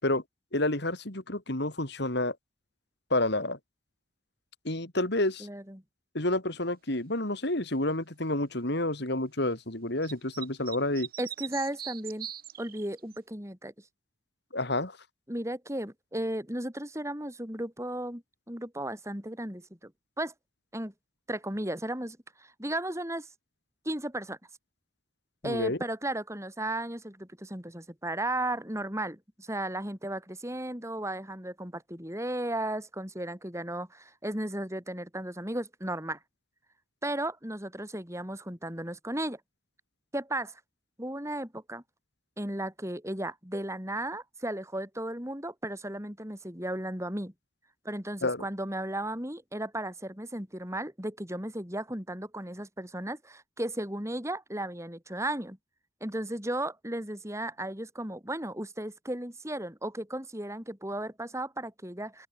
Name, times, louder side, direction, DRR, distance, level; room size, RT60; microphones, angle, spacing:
voice 1, 0.5-2.3 3.1-3.6 4.6-5.5 6.1-11.1 14.5-15.0 25.4-25.8 48.2-48.4, left 1 dB, 60° left, 3.5 m, -29 dB
voice 2, 5.4-5.8 11.2-12.3 12.6-13.7 15.3-19.9 20.2-20.3 20.7-20.9 21.3-23.3 23.9-24.4 25.4-36.2 37.0-39.4 40.1-40.6 41.0-41.8 42.4-47.3 47.9-55.6 56.0-62.3, right 1 dB, 15° right, 5.4 m, -35 dB
sound 1, 10.0-13.2, right 10 dB, 50° right, 7.7 m, -41 dB
open air
head